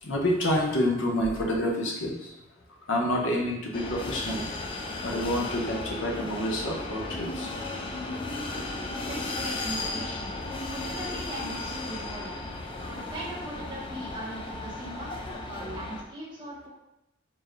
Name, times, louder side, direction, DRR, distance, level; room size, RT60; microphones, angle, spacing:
voice 1, 0.0-2.3 2.9-4.4 4.7-7.5, left 1 dB, 65° left, -1 dB, 0.8 m, -28 dB
sound 1, 3.7-16.0, left 2 dB, 25° left, 0.3 m, -35 dB
voice 2, 8.8-10.4 10.7-12.3 12.9-15.1 15.4-16.7, right 1 dB, 20° right, -7 dB, 1.2 m, -39 dB
4.5 x 2.8 x 3.1 m, 0.90 s
head